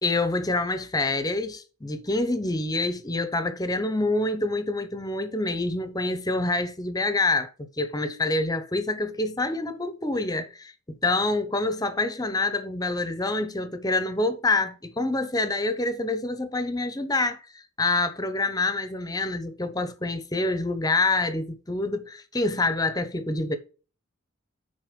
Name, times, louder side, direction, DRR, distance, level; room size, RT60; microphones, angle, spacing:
voice 1, 0.0-10.7 11.0-23.6, left 2 dB, 15° left, 0.8 m, -26 dB
9.4 x 4.0 x 5.2 m
head